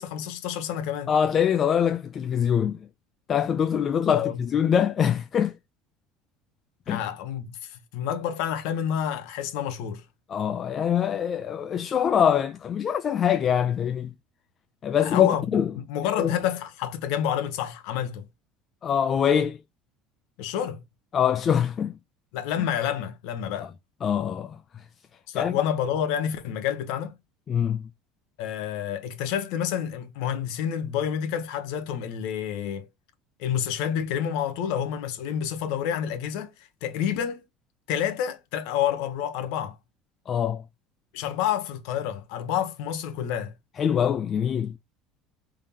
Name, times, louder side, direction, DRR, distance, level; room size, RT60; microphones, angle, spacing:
voice 1, 0.0-1.1 4.1-4.4 6.9-10.0 15.0-15.4 15.8-18.2 20.4-20.8 22.3-23.7 25.3-27.2 28.4-32.9 33.4-37.4 37.9-39.8 41.1-43.5, left 9 dB, 75° left, 0.9 m, -29 dB
voice 2, 1.1-2.9 3.3-5.5 6.9-7.0 10.3-14.1 14.8-15.7 16.0-16.4 18.8-19.6 21.1-22.0 23.6-23.7 24.0-24.6 25.4-25.6 27.5-27.9 40.3-40.6 43.8-44.8, left 8 dB, 35° left, 0.4 m, -24 dB
3.7 x 3.5 x 2.8 m
cardioid pair, 130°, 0 cm